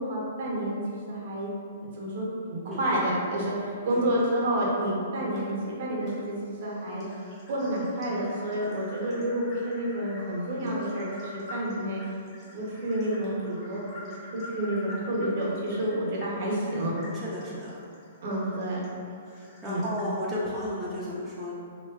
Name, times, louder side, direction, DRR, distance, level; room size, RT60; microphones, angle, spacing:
voice 1, 0.0-1.5 1.8-2.2 2.5-5.5 5.8-7.0 7.5-12.0 12.5-16.9 18.2-18.8 19.6-19.8, right 1 dB, 60° right, -4 dB, 0.6 m, -29 dB
sound 1, 4.2-4.4 5.4-5.5 6.1-6.2 6.6-20.8, left 2 dB, 25° left, 0.7 m, -47 dB
voice 2, 17.1-17.8 19.2-21.5, left 1 dB, 15° right, -8 dB, 0.4 m, -34 dB
2.6 x 2.2 x 2.2 m, 2.4 s
hypercardioid pair, 135°, 0 cm